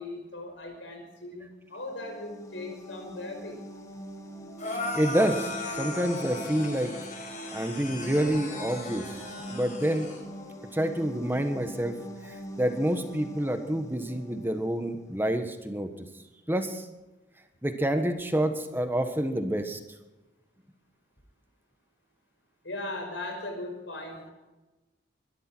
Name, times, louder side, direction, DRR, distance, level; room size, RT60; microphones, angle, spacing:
voice 1, 0.0-3.6 22.6-24.3, left 2 dB, 85° left, 3 dB, 5.5 m, -38 dB
sound 1, 1.7-15.3, right 1 dB, 20° left, 1.9 m, -43 dB
sound 2, 4.6-10.2, left 2 dB, 45° left, 5.1 m, -37 dB
voice 2, 4.7-5.5 5.8-6.9 7.5-9.0 9.5-10.1 10.7-11.9 12.2-15.9 16.5-16.9 17.6-19.8, right 1 dB, 10° right, 7 dB, 1.4 m, -28 dB
23.0 x 12.5 x 4.6 m, 1.1 s
head